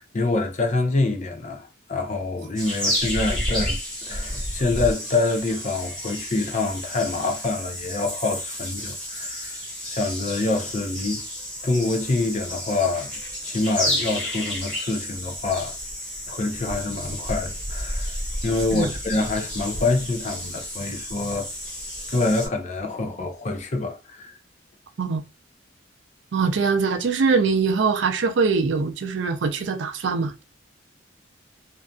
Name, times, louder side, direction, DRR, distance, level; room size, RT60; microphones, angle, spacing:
voice 1, 0.0-9.6 9.9-11.2 11.6-13.1 13.4-15.8 16.3-18.2 18.4-21.5 22.1-24.4, left 3 dB, 40° left, 0.5 m, -26 dB
sound 1, 2.6-22.5, equal, 5° left, 1.2 m, -31 dB
voice 2, 26.3-30.4, right 5 dB, 70° right, 0.4 m, -22 dB
2.6 x 2.4 x 2.2 m
head